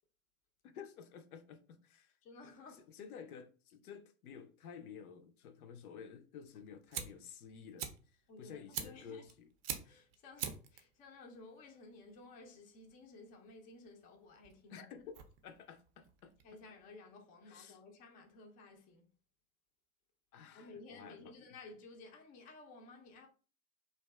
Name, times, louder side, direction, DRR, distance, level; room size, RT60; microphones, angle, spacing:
voice 1, 0.6-2.2 2.9-9.5 14.7-16.6 17.5-17.8 20.3-21.3, left 7 dB, 80° left, 0.5 m, -52 dB
voice 2, 2.2-2.9 8.3-9.3 9.8-14.9 16.4-19.1 20.5-23.3, left 3 dB, 20° left, 0.4 m, -55 dB
Fire, 6.5-17.0, right 8 dB, 40° right, 0.5 m, -47 dB
2.5 x 2.2 x 2.2 m
hypercardioid pair, 95°, 43 cm